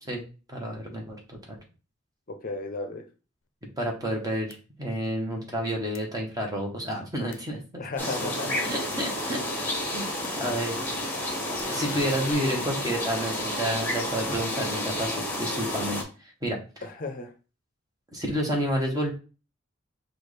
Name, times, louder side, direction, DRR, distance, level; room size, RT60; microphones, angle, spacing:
voice 1, 0.5-1.6 3.8-7.8 8.2-8.3 8.6-9.4 9.9-10.1 10.3-10.8 11.7-16.0 16.4-16.6 18.1-19.1, equal, 20° right, 0 dB, 1.2 m, -30 dB
voice 2, 2.3-3.0 7.8-8.6 16.8-17.3, left 3 dB, 45° left, 6 dB, 0.6 m, -34 dB
sound 1, 4.5-4.6 6.0-6.1 7.3-7.4 8.9-9.0 10.2-10.3 11.6-12.3, left 9 dB, 85° left, 0.5 m, -42 dB
sound 2, 8.0-16.0, left 1 dB, 10° left, 1.1 m, -31 dB
6.1 x 2.4 x 3.3 m, 0.34 s
head